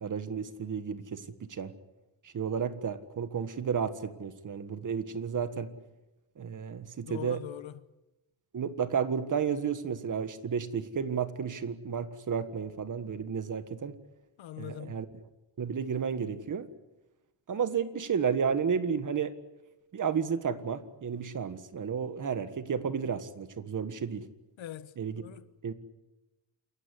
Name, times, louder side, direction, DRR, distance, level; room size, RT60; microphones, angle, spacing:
voice 1, 0.0-1.7 2.3-5.7 6.4-7.4 8.5-14.0 14.6-15.1 15.6-16.7 17.5-19.4 19.9-24.3 25.0-25.2 25.6-25.7, right 6 dB, 40° right, 1.6 m, -32 dB
voice 2, 7.1-7.8 14.4-15.0 24.6-25.5, left 11 dB, 85° left, 1.2 m, -42 dB
28.0 x 15.5 x 9.8 m
wide cardioid pair, 155°, 45 cm